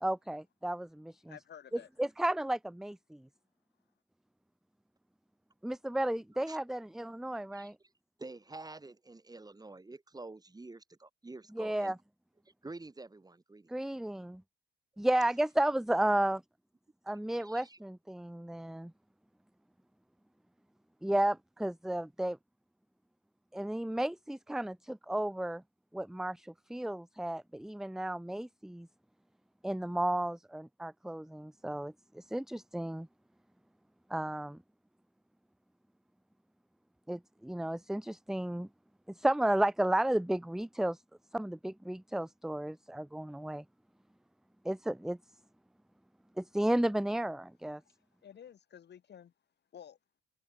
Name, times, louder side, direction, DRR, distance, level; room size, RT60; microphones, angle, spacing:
voice 1, 0.0-1.4 2.0-3.3 5.6-7.8 11.5-12.0 13.7-14.4 15.0-16.4 17.1-18.9 21.0-22.4 23.5-25.6 25.9-28.9 29.6-33.1 34.1-34.6 37.1-38.7 39.1-41.0 41.3-43.6 44.6-45.2 46.4-47.8, right 1 dB, ahead, 0.5 m, -33 dB
voice 2, 1.3-1.9 47.8-48.0 48.2-49.3 49.7-50.0, left 9 dB, 60° left, 5.9 m, -51 dB
voice 3, 8.2-12.0 12.6-13.8 17.4-17.8, right 2 dB, 20° right, 7.3 m, -48 dB
cardioid pair, 90°, 20 cm